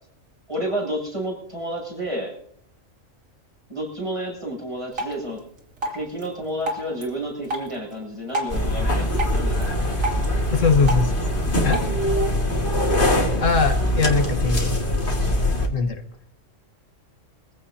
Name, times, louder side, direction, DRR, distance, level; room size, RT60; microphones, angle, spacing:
voice 1, 0.5-2.3 3.7-5.4 5.9-10.0 10.2-10.3, right 1 dB, 25° right, -3 dB, 7.9 m, -30 dB
Drip, 4.9-11.9, right 1 dB, 85° right, 3.1 m, -33 dB
sound 1, 8.5-15.7, left 1 dB, 40° left, 2.3 m, -22 dB
voice 2, 10.5-11.2 11.6-11.8 13.4-14.7 15.7-16.0, left 4 dB, 75° left, 6 dB, 1.7 m, -21 dB
25.0 x 15.5 x 2.8 m, 0.68 s
omnidirectional pair, 1.3 m